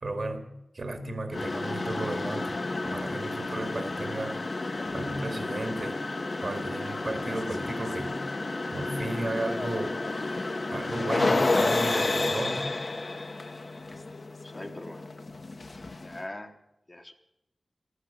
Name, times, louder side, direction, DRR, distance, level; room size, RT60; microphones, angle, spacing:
voice 1, 0.0-4.4 4.9-6.0 6.4-8.2 8.7-10.0 10.7-12.7, right 2 dB, 50° right, 6 dB, 2.0 m, -34 dB
sound 1, 1.3-16.2, left 2 dB, 45° left, 1.0 m, -31 dB
voice 2, 14.4-15.1 16.0-16.6 16.9-17.1, left 1 dB, 25° left, 5 dB, 1.2 m, -41 dB
14.5 x 12.0 x 7.1 m, 0.87 s
wide cardioid pair, 95°, 0 cm